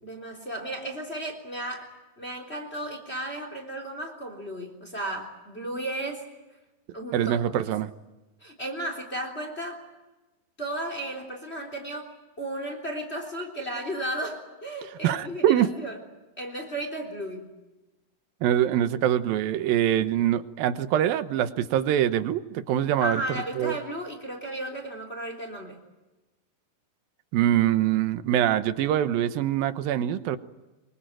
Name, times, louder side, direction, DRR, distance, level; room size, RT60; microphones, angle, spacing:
voice 1, 0.0-6.2 6.9-7.4 7.7-7.8 8.4-9.8 10.6-16.0 16.4-17.5 23.0-25.8, right 1 dB, 15° left, 4 dB, 3.4 m, -34 dB
voice 2, 7.1-7.9 15.0-15.7 18.4-23.2 23.6-23.8 27.3-30.4, right 11 dB, 75° right, 12 dB, 2.7 m, -24 dB
24.5 x 24.0 x 9.1 m, 1.1 s
omnidirectional pair, 4.5 m